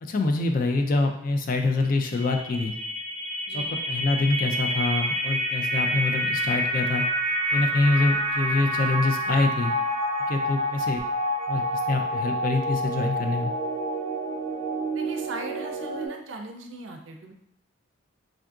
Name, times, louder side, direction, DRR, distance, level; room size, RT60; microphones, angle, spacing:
voice 1, 0.0-2.7 3.5-7.0 7.5-9.7 10.3-11.0 11.5-13.5, left 3 dB, 40° left, 4 dB, 0.3 m, -25 dB
sound 1, 1.8-16.1, equal, 70° left, 1.2 m, -28 dB
voice 2, 14.9-17.3, right 2 dB, 65° right, 4 dB, 0.5 m, -39 dB
3.6 x 2.5 x 2.3 m, 0.75 s
head